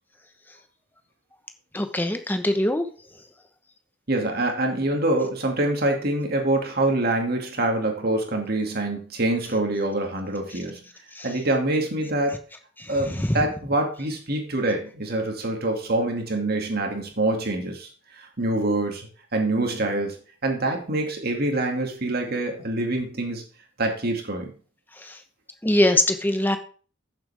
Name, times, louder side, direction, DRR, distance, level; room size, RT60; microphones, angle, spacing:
voice 1, 1.7-2.9 11.2-11.3 13.1-13.4 25.6-26.6, left 1 dB, 10° left, 7 dB, 1.0 m, -22 dB
voice 2, 4.1-10.8 11.2-12.4 12.9-17.9 18.1-20.2 20.4-23.4 23.8-24.5, right 2 dB, 55° right, 2 dB, 2.3 m, -25 dB
13.0 x 7.4 x 3.5 m, 0.40 s
head